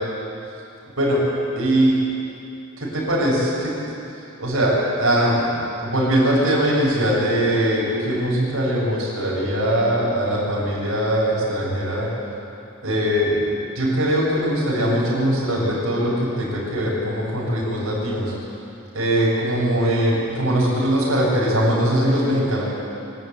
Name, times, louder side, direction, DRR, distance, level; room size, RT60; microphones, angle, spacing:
voice 1, 1.6-1.9 2.8-3.7 4.4-5.5 5.8-12.1 12.8-18.3 18.9-22.6, equal, 70° right, -5 dB, 7.0 m, -21 dB
24.5 x 12.0 x 9.2 m, 2.7 s
head